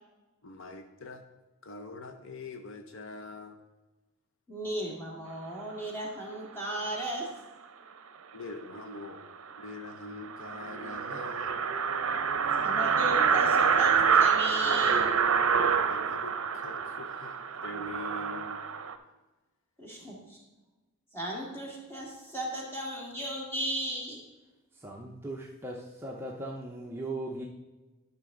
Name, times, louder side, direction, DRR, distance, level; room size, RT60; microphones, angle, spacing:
voice 1, 0.4-1.2 1.6-3.6 8.3-9.3 9.6-11.6 15.9-18.6, left 2 dB, 60° left, 6 dB, 0.6 m, -43 dB
voice 2, 4.5-7.3 12.6-15.1 19.8-20.4 21.1-24.2, right 1 dB, 10° left, -3 dB, 1.9 m, -36 dB
sound 1, 9.0-9.1 9.5-9.6 9.9-10.0 10.2-18.9, right 6 dB, 70° right, 0.6 m, -27 dB
voice 3, 24.7-27.5, right 1 dB, 10° right, -1 dB, 0.6 m, -38 dB
11.0 x 6.0 x 3.7 m, 1.2 s
head